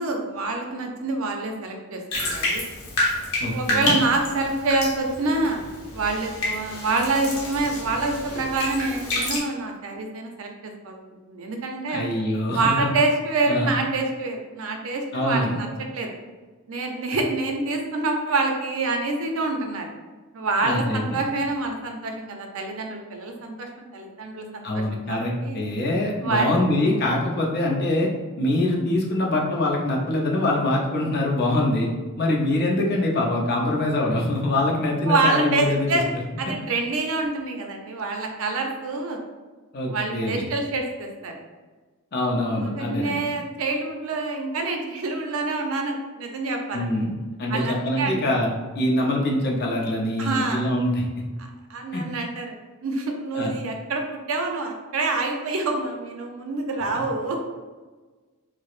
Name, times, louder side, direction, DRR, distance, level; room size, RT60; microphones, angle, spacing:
voice 1, 0.0-2.6 3.5-5.6 5.9-11.0 11.3-12.0 12.5-15.7 15.9-16.2 16.7-19.9 20.3-25.6 26.2-26.5 35.1-36.0 36.4-39.2 39.9-41.4 42.5-46.9 47.5-48.2 50.2-50.7 51.4-52.6 52.8-57.4, right 3 dB, 70° right, 3 dB, 0.5 m, -26 dB
Bathtub (filling or washing), 2.1-9.4, left 1 dB, 75° left, 0.9 m, -29 dB
voice 2, 3.4-4.0 11.9-12.9 13.5-13.7 15.1-15.6 20.6-21.2 24.6-28.1 28.4-31.9 32.2-36.0 39.7-40.4 42.1-43.2 46.7-47.1 47.4-48.5 48.7-51.0 51.9-52.0 53.3-53.5, left 1 dB, 45° left, -1 dB, 0.6 m, -24 dB
4.5 x 2.0 x 2.4 m, 1.3 s
head